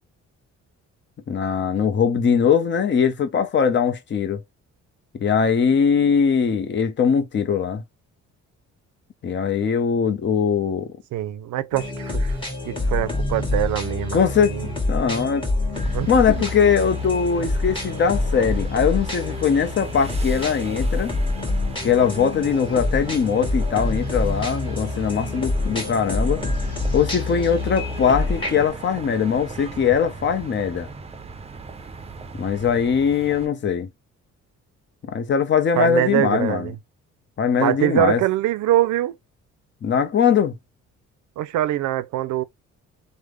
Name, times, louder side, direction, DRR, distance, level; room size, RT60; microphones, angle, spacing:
voice 1, 1.3-4.4 5.1-7.8 9.2-10.9 14.1-14.5 14.9-15.5 16.1-21.1 21.8-26.4 26.9-30.9 32.3-33.9 35.0-36.7 37.4-38.2 39.8-40.6, left 7 dB, 40° left, 0.7 m, -21 dB
voice 2, 11.1-12.4 12.6-14.7 15.9-16.4 35.8-36.8 37.6-39.2 41.4-42.4, right 13 dB, 75° right, 0.5 m, -23 dB
sound 1, 11.7-28.7, left 2 dB, 15° left, 1.5 m, -26 dB
sound 2, 15.7-33.5, right 4 dB, 20° right, 0.6 m, -38 dB
3.4 x 2.1 x 3.2 m
cardioid pair, 90°, 30 cm